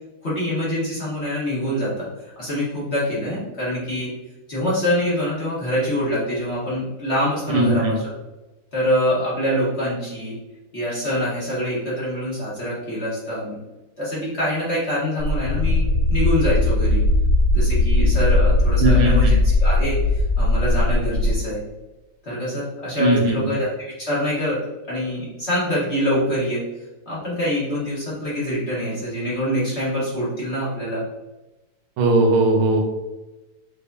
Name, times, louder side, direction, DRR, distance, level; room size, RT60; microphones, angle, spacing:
voice 1, 0.2-2.1 2.4-4.1 4.5-8.1 8.7-10.3 10.7-13.6 14.0-17.0 17.5-21.6 22.2-24.6 24.9-26.6 27.1-31.0, equal, 35° left, -8 dB, 1.5 m, -25 dB
voice 2, 7.5-7.9 18.8-19.3 23.0-23.4 32.0-32.8, right 2 dB, 80° right, 1 dB, 1.7 m, -18 dB
sound 1, 15.2-21.3, left 2 dB, 75° left, 1.1 m, -18 dB
5.8 x 3.4 x 2.7 m, 1.1 s
omnidirectional pair, 2.3 m